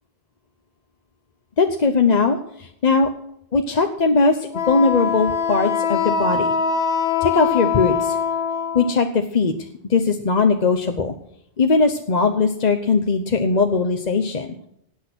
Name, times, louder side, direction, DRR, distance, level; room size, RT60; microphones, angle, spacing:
voice 1, 1.6-3.1 3.5-6.5 7.2-8.2 8.7-9.5 9.9-11.1 11.6-14.5, left 4 dB, 40° left, 5 dB, 0.9 m, -19 dB
Wind instrument woodwind instrument, 4.5-9.0, left 6 dB, 65° left, 1.3 m, -23 dB
18.0 x 8.6 x 6.1 m, 0.75 s
omnidirectional pair, 1.1 m